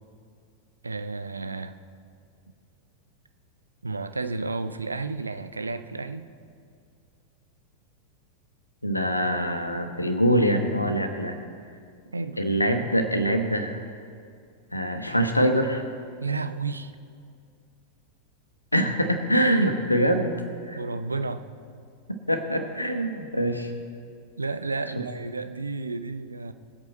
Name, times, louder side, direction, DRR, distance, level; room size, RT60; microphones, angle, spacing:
voice 1, 0.8-1.8 3.8-6.3 12.1-12.4 16.2-16.9 20.7-21.4 24.4-26.5, right 3 dB, 80° right, 11 dB, 0.6 m, -31 dB
voice 2, 8.8-11.4 12.4-13.8 14.7-15.8 18.7-20.3 20.7-20.8 22.1-23.7 24.9-25.0, equal, 85° left, 7 dB, 1.2 m, -24 dB
23.5 x 8.3 x 4.1 m, 2.3 s
figure-of-eight pair, 90°, 0 cm